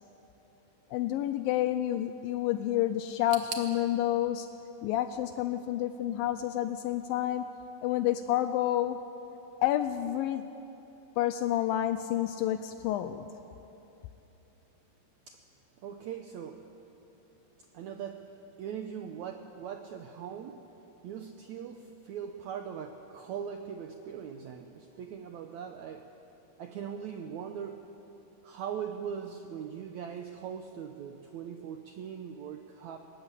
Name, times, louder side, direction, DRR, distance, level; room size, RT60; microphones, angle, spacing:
voice 1, 0.9-4.5 4.8-7.5 7.8-9.0 9.6-10.4 11.2-13.3, left 12 dB, 80° left, 10 dB, 2.3 m, -29 dB
sound 1, 3.3-6.2 6.4-7.2 7.5-7.6 8.5-8.6, right 6 dB, 60° right, 2.5 m, -46 dB
voice 2, 15.8-16.6 17.7-20.6 21.0-26.1 26.6-27.9 28.4-33.0, right 8 dB, 75° right, 5 dB, 1.7 m, -40 dB
20.5 x 18.0 x 8.3 m, 2.9 s
omnidirectional pair, 4.2 m